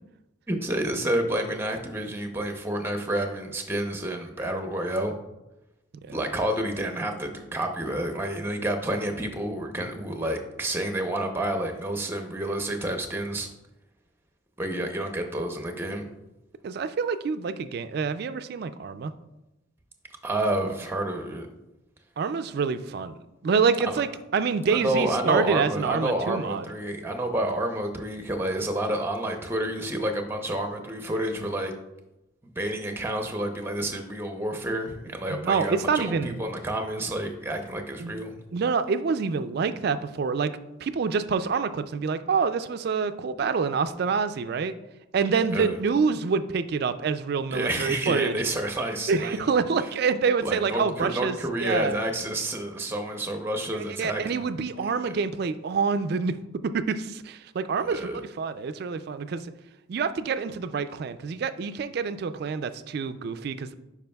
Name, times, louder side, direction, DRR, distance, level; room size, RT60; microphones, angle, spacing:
voice 1, 0.5-5.1 6.1-13.5 14.6-16.1 20.2-21.5 23.8-24.0 24.8-31.7 32.6-38.4 45.5-45.8 47.5-49.4 49.8-49.9 50.4-54.5 57.9-58.2, right 1 dB, 10° right, 4 dB, 0.6 m, -29 dB
voice 2, 16.6-19.1 22.2-26.6 35.3-36.4 38.0-38.1 38.5-40.5 40.8-44.7 45.1-48.3 49.1-52.0 53.7-56.4 56.6-58.1 58.4-59.5 59.9-63.7, right 5 dB, 50° right, 12 dB, 0.3 m, -27 dB
10.5 x 4.7 x 2.3 m, 0.99 s
head